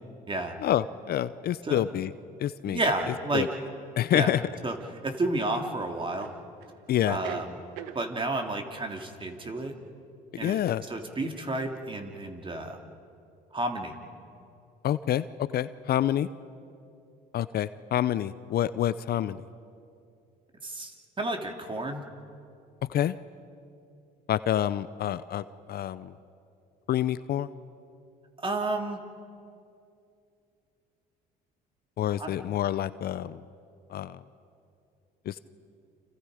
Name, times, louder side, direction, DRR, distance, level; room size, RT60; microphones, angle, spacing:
voice 1, 0.6-2.1 2.4-2.8 3.3-3.5 4.0-4.4 6.9-7.2 10.3-10.8 14.8-16.3 17.3-19.4 22.9-23.2 24.3-26.1 26.9-27.5 32.0-33.4 33.9-34.2 35.3-35.4, left 11 dB, 55° left, 15 dB, 0.7 m, -27 dB
voice 2, 2.6-3.5 4.1-4.3 4.6-4.7 5.0-6.3 7.0-7.6 7.9-9.8 10.4-10.6 10.9-12.8 13.5-13.9 20.6-22.0 28.4-29.0 32.2-32.3, right 2 dB, 25° right, 3 dB, 3.0 m, -31 dB
sound 1, 2.6-2.8 4.4-5.3 6.2-6.8 7.0-8.0, right 10 dB, 80° right, 1.3 m, -42 dB
29.5 x 27.0 x 5.1 m, 2.6 s
supercardioid pair, 70°, 19 cm